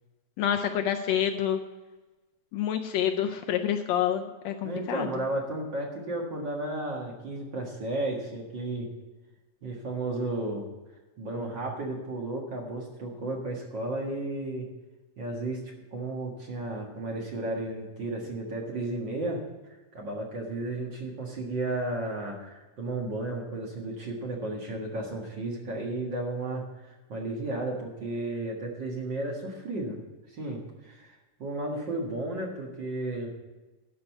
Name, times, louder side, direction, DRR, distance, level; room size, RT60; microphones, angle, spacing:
voice 1, 0.4-1.6 2.5-5.1, left 9 dB, 75° left, 5 dB, 1.7 m, -27 dB
voice 2, 4.6-8.9 9.6-10.7 11.2-14.7 15.2-15.6 15.9-19.4 19.9-30.0 30.3-33.3, right 2 dB, 45° right, -1 dB, 2.0 m, -33 dB
12.0 x 5.5 x 8.0 m, 1.1 s
omnidirectional pair, 3.4 m